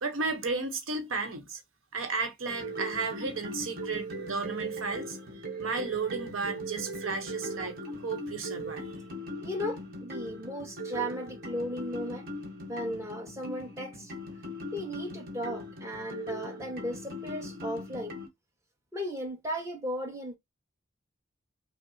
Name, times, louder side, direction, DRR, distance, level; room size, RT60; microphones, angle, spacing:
voice 1, 0.0-1.6 1.9-5.2 5.6-8.8, right 4 dB, 90° right, 0.9 m, -33 dB
sound 1, 2.5-18.3, equal, 50° right, 1.1 m, -39 dB
voice 2, 9.4-12.3 12.7-14.1 14.7-18.1 18.9-20.4, equal, 15° right, 1.1 m, -36 dB
5.5 x 2.0 x 2.7 m
head